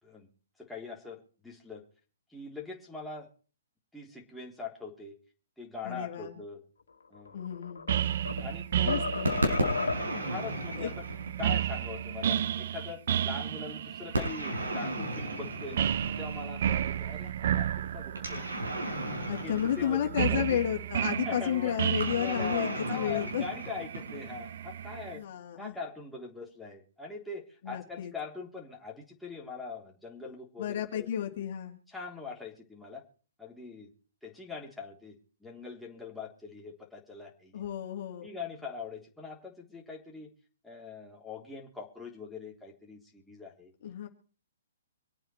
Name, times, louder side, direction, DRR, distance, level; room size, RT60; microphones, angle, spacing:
voice 1, 0.6-1.8 2.3-3.3 3.9-5.1 5.6-6.6 7.1-7.4 8.4-9.2 10.2-11.1 11.4-18.5 19.4-20.5 21.2-21.8 22.1-25.2 25.6-31.1 31.3-31.4 31.9-33.0 33.4-33.9 34.2-37.6 38.2-40.3 40.6-43.7, left 4 dB, ahead, -4 dB, 3.5 m, -42 dB
voice 2, 5.8-6.3 7.3-7.9 8.8-9.3 10.8-10.9 19.3-23.4 25.1-25.7 27.6-28.1 30.6-31.8 37.5-38.3 43.8-44.1, left 10 dB, 50° left, 3 dB, 2.5 m, -32 dB
sound 1, 7.1-8.5 8.9-10.3, left 4 dB, 80° left, 2.1 m, -34 dB
sound 2, 7.9-25.2, right 10 dB, 55° right, 0.7 m, -33 dB
sound 3, 9.2-11.9 14.1-16.5 18.2-20.6 22.0-24.4, right 1 dB, 85° right, 6.2 m, -34 dB
25.5 x 8.8 x 4.5 m, 0.41 s
hypercardioid pair, 130°, 0 cm